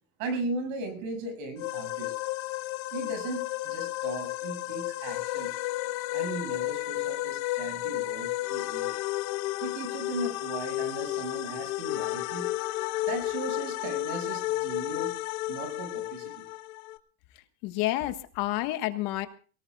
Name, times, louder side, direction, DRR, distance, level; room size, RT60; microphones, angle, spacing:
voice 1, 0.2-2.1 2.9-5.5 6.1-9.0 9.6-12.5 13.1-15.1 15.5-16.3, right 2 dB, 70° right, 7 dB, 6.5 m, -37 dB
sound 1, 1.6-17.0, left 18 dB, 75° left, 1.4 m, -32 dB
voice 2, 17.6-19.3, left 16 dB, 55° left, 8 dB, 1.6 m, -29 dB
23.0 x 18.5 x 2.4 m, 0.38 s
cardioid pair, 160°, 42 cm